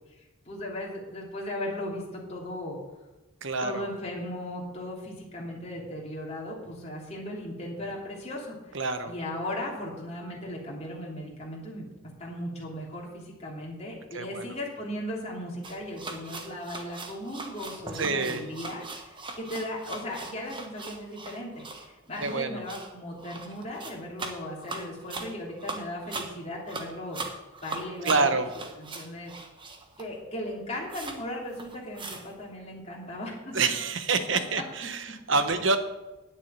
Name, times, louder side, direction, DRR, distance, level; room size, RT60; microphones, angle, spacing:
voice 1, 0.1-2.8 3.6-8.8 9.1-11.8 12.2-28.4 28.8-29.3 30.0-33.5, left 1 dB, 30° left, -3 dB, 3.2 m, -37 dB
voice 2, 3.4-3.9 8.7-9.1 14.1-14.4 17.9-18.4 22.2-22.6 28.0-28.5 33.5-35.8, right 4 dB, 60° right, 9 dB, 1.1 m, -27 dB
sound 1, 15.6-30.2 30.5-30.6 30.9-31.2 31.5-32.3, right 3 dB, 20° right, 1.2 m, -40 dB
9.7 x 7.4 x 9.0 m, 1.1 s
head